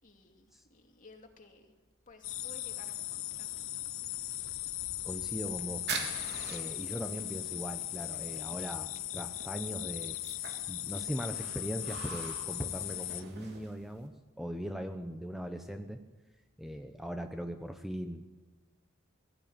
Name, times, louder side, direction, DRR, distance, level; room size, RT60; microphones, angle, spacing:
voice 1, 0.0-1.8 2.1-3.5, left 2 dB, 40° left, 3 dB, 2.6 m, -56 dB
sound 1, 2.2-13.2, left 15 dB, 65° left, 0.9 m, -38 dB
voice 2, 5.0-6.1 6.5-10.2 10.7-16.0 16.6-18.2, equal, ahead, 6 dB, 0.9 m, -40 dB
sound 2, 5.4-14.1, right 4 dB, 50° right, 3.7 m, -45 dB
21.5 x 15.0 x 8.9 m, 1.2 s
head